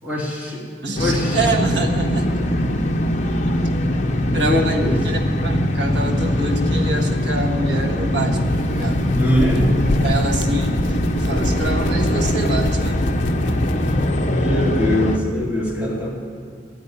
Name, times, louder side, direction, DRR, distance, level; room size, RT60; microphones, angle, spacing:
voice 1, 0.0-0.6 0.9-1.5 2.7-2.8 4.4-4.9 9.1-9.6 14.2-16.1, left 1 dB, 10° right, -4 dB, 3.0 m, -22 dB
voice 2, 0.8-2.3 3.5-3.6 4.3-9.0 10.0-13.0, right 2 dB, 70° right, 3 dB, 1.4 m, -26 dB
sound 1, 1.0-15.2, left 1 dB, 40° left, 1.0 m, -21 dB
sound 2, 6.9-14.1, left 3 dB, 80° left, 0.5 m, -31 dB
sound 3, 7.7-12.4, right 3 dB, 50° right, 4.3 m, -37 dB
13.0 x 9.4 x 9.7 m, 2.3 s
head